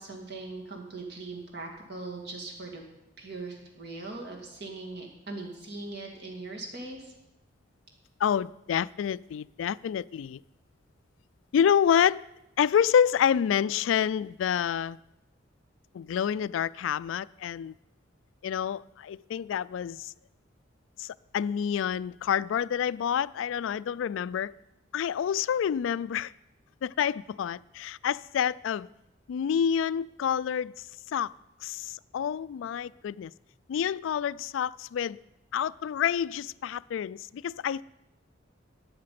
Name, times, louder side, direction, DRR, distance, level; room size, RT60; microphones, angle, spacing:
voice 1, 0.0-2.8 3.2-7.1, right 3 dB, 55° right, 2.5 m, -40 dB
voice 2, 8.2-10.4 11.5-12.2 12.6-15.0 15.9-17.7 18.4-20.1 21.0-24.5 24.9-26.3 26.8-28.9 29.3-31.3 31.6-33.3 33.7-35.2 35.5-37.8, left 8 dB, 80° left, 0.3 m, -28 dB
12.5 x 8.6 x 5.9 m
head